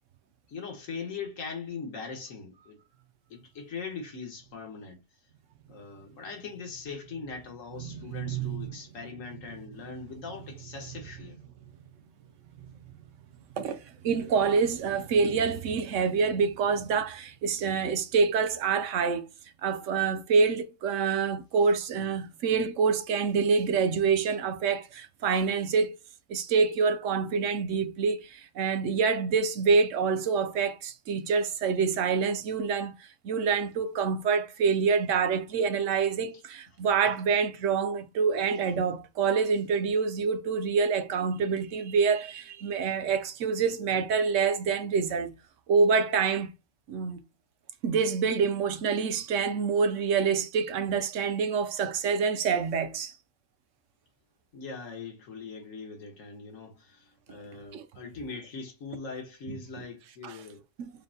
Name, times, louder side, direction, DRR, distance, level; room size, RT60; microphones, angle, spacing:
voice 1, 0.5-2.8 3.3-5.0 5.7-11.4 54.5-60.6, left 5 dB, 90° left, 1.5 m, -41 dB
voice 2, 7.8-8.6 13.5-19.3 19.6-26.0 26.3-32.9 33.2-45.3 45.7-46.5 46.9-47.2 47.8-53.1 57.7-57.8 59.5-59.6 60.2-60.4 60.8-60.9, right 5 dB, 75° right, 1.0 m, -26 dB
5.7 x 2.1 x 2.7 m
omnidirectional pair, 1.3 m